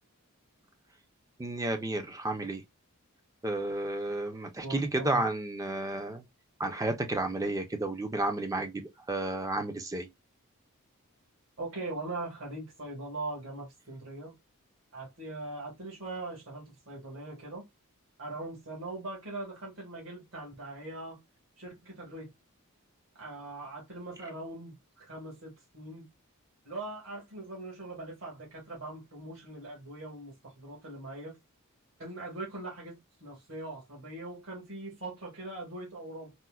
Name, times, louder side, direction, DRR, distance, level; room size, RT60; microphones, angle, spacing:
voice 1, 1.4-2.6 3.4-6.2 6.6-10.1, right 2 dB, 15° right, 0.5 m, -32 dB
voice 2, 4.6-5.2 11.6-14.3 14.9-17.6 18.2-21.2 21.6-22.3 23.2-26.1 26.6-31.4 32.0-36.3, right 2 dB, 65° right, 1.6 m, -41 dB
4.2 x 2.1 x 2.3 m
head